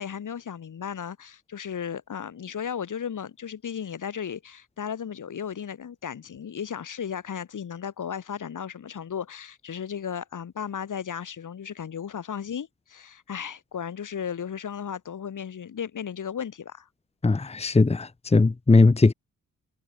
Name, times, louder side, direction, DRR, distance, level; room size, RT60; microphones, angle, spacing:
voice 1, 0.0-16.9, left 8 dB, 65° left, 6.7 m, -35 dB
voice 2, 17.2-19.1, left 3 dB, 20° left, 1.2 m, -19 dB
cardioid pair, 85°, 34 cm